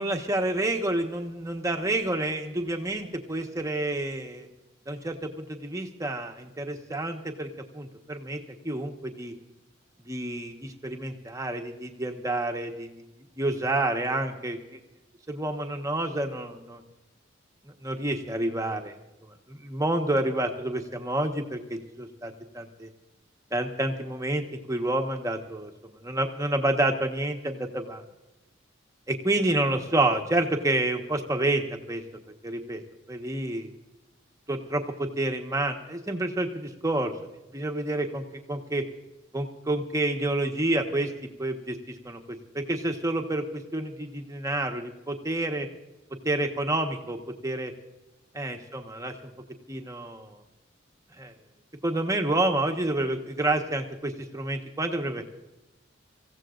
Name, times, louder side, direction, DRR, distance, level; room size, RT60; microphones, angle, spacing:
voice 1, 0.0-4.5 4.9-9.3 10.1-12.9 13.4-14.8 15.3-16.8 17.7-19.0 19.5-22.9 23.5-25.7 26.0-28.0 29.1-32.0 32.4-32.8 33.1-33.7 34.5-37.1 37.5-38.2 38.5-38.8 39.3-41.1 41.4-42.2 42.5-45.7 46.2-47.2 47.4-47.7 48.3-49.1 49.7-50.4 51.1-51.3 51.8-55.2, right 1 dB, 15° right, 4 dB, 1.3 m, -29 dB
27.0 x 16.0 x 2.6 m, 0.99 s
head